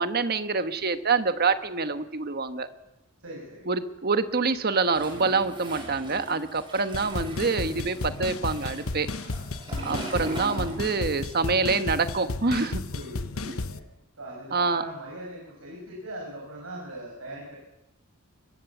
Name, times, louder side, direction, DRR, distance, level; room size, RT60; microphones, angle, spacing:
voice 1, 0.0-2.7 3.7-9.1 9.8-12.8 14.5-14.8, right 4 dB, 50° right, 10 dB, 1.3 m, -26 dB
voice 2, 3.2-3.7 12.9-13.8 14.2-17.6, right 1 dB, 80° right, -2 dB, 5.9 m, -40 dB
Toilet flush, 4.9-11.3 11.6-13.2, right 1 dB, 25° right, 7.6 m, -41 dB
sound 1, 6.9-13.8, left 3 dB, 80° left, 1.0 m, -33 dB
22.5 x 20.5 x 7.2 m, 0.95 s
head